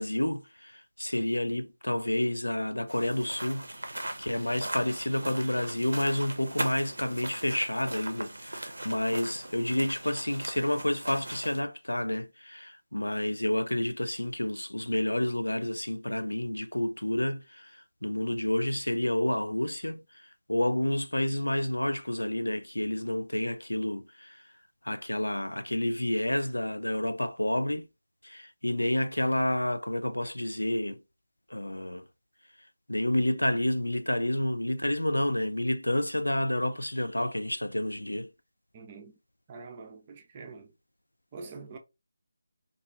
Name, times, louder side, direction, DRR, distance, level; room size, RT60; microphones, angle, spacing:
voice 1, 0.0-20.0 20.5-24.4 24.8-27.9 28.2-31.0 31.5-32.0 32.9-38.3, left 1 dB, 90° left, 0.3 m, -29 dB
sound 1, 2.9-11.6, right 1 dB, 80° right, 0.5 m, -39 dB
voice 2, 38.7-39.2 39.5-40.7 41.3-41.8, right 4 dB, 25° right, 0.5 m, -45 dB
2.4 x 2.3 x 2.7 m
figure-of-eight pair, 155°, 0 cm